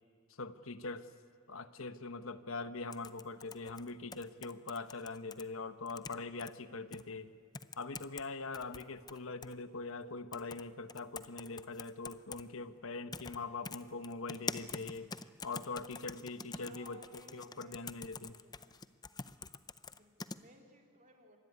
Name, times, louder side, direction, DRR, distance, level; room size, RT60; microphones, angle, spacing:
voice 1, 0.4-1.1 1.5-7.3 7.8-15.1 15.4-17.0 17.3-18.3, left 3 dB, 75° left, 11 dB, 1.1 m, -42 dB
sound 1, 2.9-5.4 5.9-6.5 6.9-7.0 7.5-8.3 8.5-9.5 10.3-10.6 10.9-12.4 13.1-13.4 13.6-20.4, left 4 dB, 20° left, 0.6 m, -45 dB
voice 2, 16.5-18.6 19.9-21.4, right 1 dB, 35° right, 2 dB, 3.0 m, -60 dB
25.5 x 21.0 x 9.7 m, 2.2 s
head